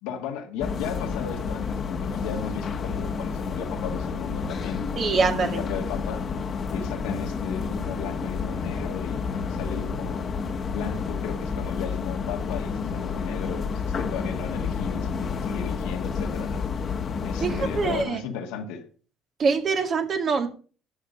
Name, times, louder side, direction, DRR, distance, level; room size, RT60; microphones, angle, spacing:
voice 1, 0.0-6.3 6.7-10.3 10.7-16.7 17.2-18.9, left 7 dB, 70° left, 1.8 m, -36 dB
sound 1, 0.6-18.1, left 5 dB, 45° left, 1.5 m, -30 dB
voice 2, 5.0-5.7 17.4-18.2 19.4-20.5, right 5 dB, 50° right, 2.1 m, -24 dB
11.5 x 6.5 x 6.6 m
hypercardioid pair, 55°, 0 cm